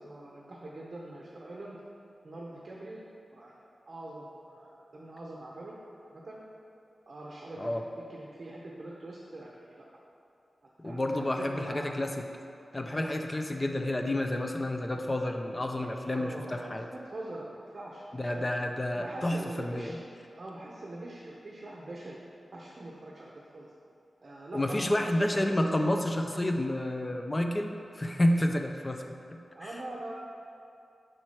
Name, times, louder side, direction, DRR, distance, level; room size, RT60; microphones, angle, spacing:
voice 1, 0.0-1.8 2.2-3.0 3.3-3.5 3.8-5.8 6.1-6.4 7.1-9.9 10.8-11.9 16.1-18.5 18.9-20.0 20.3-22.2 22.5-23.7 24.2-24.8 25.1-25.8 29.5-30.1, right 1 dB, 45° right, -4 dB, 0.7 m, -43 dB
voice 2, 10.8-12.2 12.7-16.9 18.2-20.0 24.5-29.7, left 1 dB, 20° left, 4 dB, 0.4 m, -30 dB
6.4 x 4.5 x 4.3 m, 2.5 s
wide cardioid pair, 115°, 0 cm